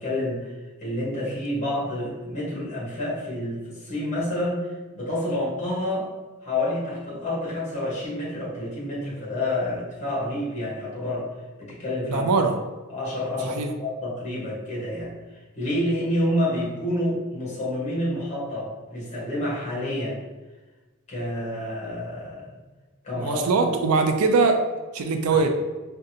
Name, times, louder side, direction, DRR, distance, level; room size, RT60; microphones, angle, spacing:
voice 1, 0.0-6.1 6.4-11.3 11.6-12.3 12.9-20.2 21.1-22.6 23.0-23.9 25.3-25.4, left 1 dB, 30° left, -6 dB, 1.2 m, -29 dB
voice 2, 12.1-12.6 13.4-13.7 23.2-24.6 24.9-25.5, right 4 dB, 85° right, 6 dB, 0.4 m, -21 dB
3.7 x 2.2 x 2.7 m, 1.2 s
head